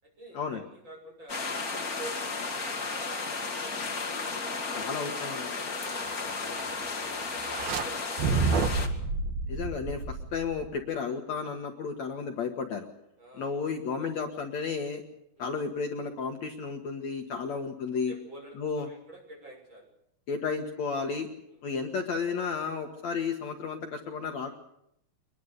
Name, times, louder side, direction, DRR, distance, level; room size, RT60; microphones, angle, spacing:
voice 1, 0.0-4.2 4.8-5.7 6.1-9.1 13.2-13.6 14.0-14.1 15.4-15.5 17.5-17.6 18.1-19.8 21.5-21.6, right 1 dB, 30° right, 1 dB, 7.2 m, -49 dB
sound 1, 1.3-8.9, left 4 dB, 30° left, 2.0 m, -34 dB
voice 2, 4.7-5.5 9.5-12.9 13.4-15.0 15.4-18.1 18.6-18.9 20.3-21.3 21.6-24.5, left 5 dB, 55° left, 4 dB, 2.4 m, -33 dB
sound 2, 7.4-7.8 8.2-10.8, right 4 dB, 85° right, 3.2 m, -29 dB
23.5 x 21.5 x 6.7 m, 0.76 s
omnidirectional pair, 4.2 m